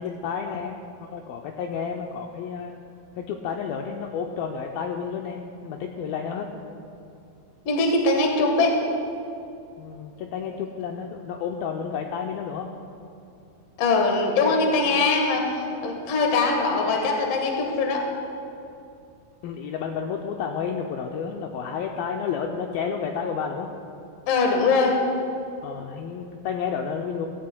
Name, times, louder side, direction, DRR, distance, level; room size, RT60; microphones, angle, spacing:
voice 1, 0.0-2.8 3.1-6.5 9.8-12.7 19.4-23.7 25.6-27.3, left 6 dB, 85° left, 2 dB, 2.1 m, -31 dB
voice 2, 7.6-8.8 13.8-15.5 15.8-18.0 24.3-25.0, left 3 dB, 65° left, 2 dB, 1.6 m, -22 dB
17.0 x 15.0 x 2.2 m, 2.6 s
omnidirectional pair, 4.7 m